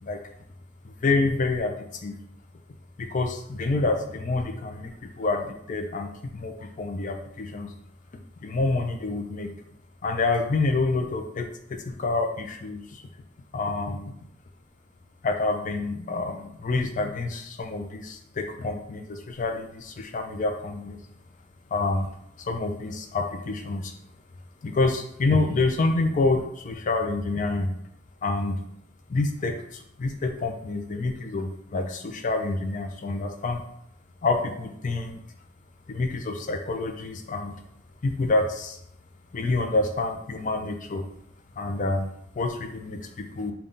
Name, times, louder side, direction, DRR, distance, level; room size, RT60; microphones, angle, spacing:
voice 1, 0.8-1.7 2.0-2.1 3.0-7.7 8.4-9.5 10.0-13.0 13.5-14.1 15.2-21.0 21.7-22.1 22.4-23.9 24.6-27.7 28.2-28.6 29.1-33.6 34.2-35.2 35.9-37.5 38.0-38.8 39.3-41.0 41.6-42.1 42.3-43.5, left 3 dB, 45° left, 5 dB, 0.5 m, -27 dB
3.8 x 2.3 x 3.7 m, 0.73 s
head